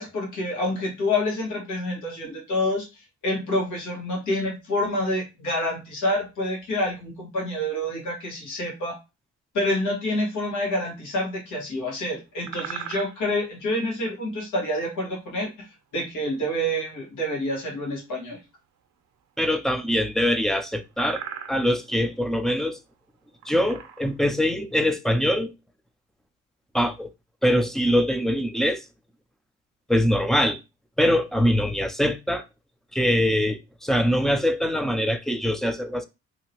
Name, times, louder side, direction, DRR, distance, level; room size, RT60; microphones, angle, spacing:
voice 1, 0.0-9.0 9.5-15.7 15.9-18.4, left 1 dB, 80° left, 1.6 m, -27 dB
sound 1, 12.3-13.3 16.3-16.4 19.9-20.0 20.4-20.5 20.9-21.7 22.4-22.5 23.2-24.2, right 8 dB, 60° right, 0.6 m, -37 dB
voice 2, 19.4-21.2 21.5-22.8 23.5-25.5 26.7-27.1 27.4-28.8 29.9-30.6 31.0-32.4 32.9-36.0, equal, ahead, 0.4 m, -23 dB
2.8 x 2.8 x 2.9 m
cardioid pair, 90°, 30 cm